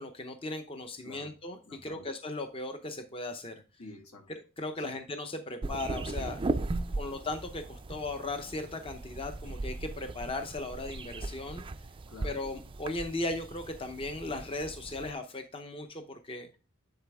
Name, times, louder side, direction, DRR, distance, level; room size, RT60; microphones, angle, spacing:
voice 1, 0.0-3.6 4.6-6.4 7.0-11.6 12.2-16.5, left 2 dB, 25° left, 6 dB, 0.6 m, -37 dB
voice 2, 1.6-2.1 3.8-4.3 4.9-5.0 6.7-7.0 12.1-12.4, left 2 dB, 75° left, 2 dB, 1.9 m, -49 dB
sound 1, 5.6-15.1, right 2 dB, 25° right, 0.4 m, -38 dB
10.0 x 4.1 x 3.4 m, 0.33 s
head